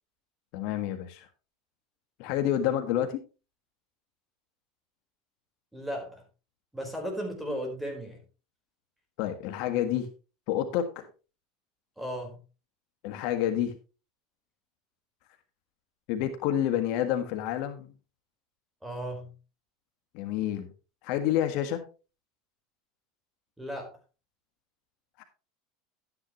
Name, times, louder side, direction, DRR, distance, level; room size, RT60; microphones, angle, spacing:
voice 1, 0.5-1.3 2.2-3.2 9.2-10.1 10.5-11.1 13.0-13.7 16.1-17.9 20.1-20.7 21.0-21.8 25.2-25.3, left 11 dB, 60° left, 6 dB, 1.5 m, -28 dB
voice 2, 5.7-6.2 6.7-8.2 12.0-12.4 18.8-19.3 23.6-23.9, equal, 5° right, 3 dB, 4.3 m, -35 dB
12.0 x 9.7 x 3.1 m, 0.32 s
supercardioid pair, 135°, 0 cm